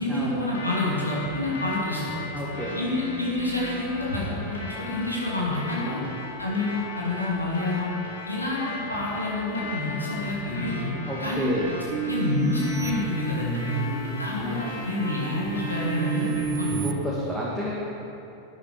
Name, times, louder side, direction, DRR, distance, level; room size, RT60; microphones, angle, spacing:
voice 1, 0.0-2.1 2.7-6.0 6.4-7.9 8.2-10.9 11.2-11.5 12.1-13.7 14.1-16.9, left 2 dB, 85° left, -5 dB, 2.7 m, -28 dB
sound 1, 0.5-16.5, left 2 dB, 70° left, 2.2 m, -38 dB
voice 2, 2.3-2.8 5.8-6.1 11.1-11.7 13.7-14.7 16.8-17.7, equal, ahead, -7 dB, 1.8 m, -31 dB
sound 2, 11.9-13.9 14.4-16.9, right 8 dB, 30° right, 0.7 m, -33 dB
11.5 x 9.0 x 4.8 m, 2.9 s
figure-of-eight pair, 90°, 0 cm